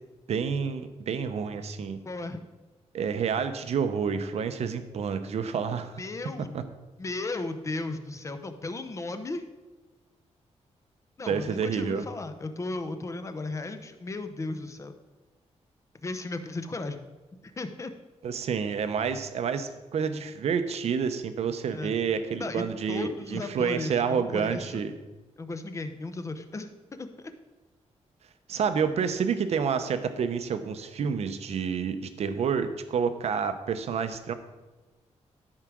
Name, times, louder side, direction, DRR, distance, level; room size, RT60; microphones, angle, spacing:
voice 1, 0.3-2.0 2.9-6.0 6.5-6.6 11.3-12.1 18.2-24.9 28.5-34.3, right 6 dB, 65° right, 10 dB, 0.7 m, -29 dB
voice 2, 2.0-2.4 6.0-6.6 7.0-9.4 11.2-14.9 16.0-17.0 17.4-17.9 21.7-22.0 22.4-24.8 25.4-27.1, left 2 dB, 25° left, 8 dB, 0.6 m, -35 dB
13.0 x 4.8 x 6.1 m, 1.2 s
wide cardioid pair, 180°, 12 cm